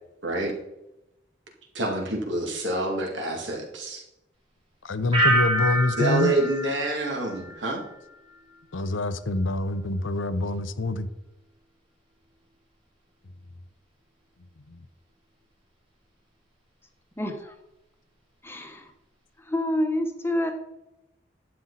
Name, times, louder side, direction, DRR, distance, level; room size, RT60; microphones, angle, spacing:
voice 1, 1.7-4.0 6.0-7.8, right 2 dB, 65° right, 1 dB, 2.4 m, -27 dB
voice 2, 4.8-6.4 8.7-11.1 14.7-14.8, left 2 dB, 80° left, 12 dB, 0.7 m, -26 dB
sound 1, 5.1-8.0 8.3-8.8, right 1 dB, 25° right, 2.5 m, -27 dB
voice 3, 17.2-17.5 18.4-18.9 19.4-20.5, left 1 dB, 10° left, 5 dB, 1.1 m, -28 dB
11.5 x 7.7 x 4.1 m, 0.89 s
head